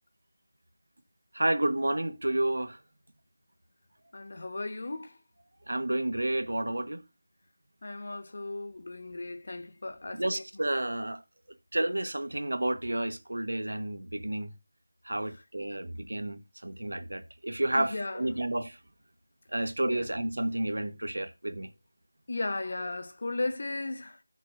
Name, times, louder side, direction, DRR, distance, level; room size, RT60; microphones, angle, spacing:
voice 1, 1.3-2.8 5.7-7.0 10.1-11.2 11.7-14.5 15.0-18.8 19.5-21.7, right 1 dB, 80° right, 1.3 m, -30 dB
voice 2, 4.1-5.1 7.8-10.4 17.7-18.2 19.9-20.0 22.3-24.2, left 2 dB, 50° left, 1.3 m, -36 dB
15.5 x 6.4 x 2.6 m
figure-of-eight pair, 170°, 0 cm